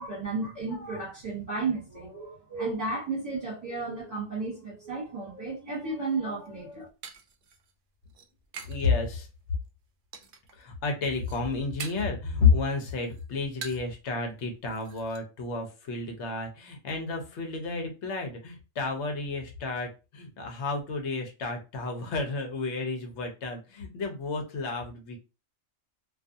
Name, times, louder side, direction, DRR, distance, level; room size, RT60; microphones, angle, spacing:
voice 1, 0.0-6.9, right 3 dB, 35° right, 1.1 m, -33 dB
sound 1, 6.3-8.9 9.2-9.7 10.1-10.6 11.0-12.2 12.6-14.0 14.3-14.4 14.7-15.2, right 6 dB, 60° right, 0.6 m, -45 dB
voice 2, 8.7-9.3 10.5-25.2, left 4 dB, 70° left, 1.0 m, -30 dB
2.4 x 2.3 x 2.5 m
omnidirectional pair, 1.2 m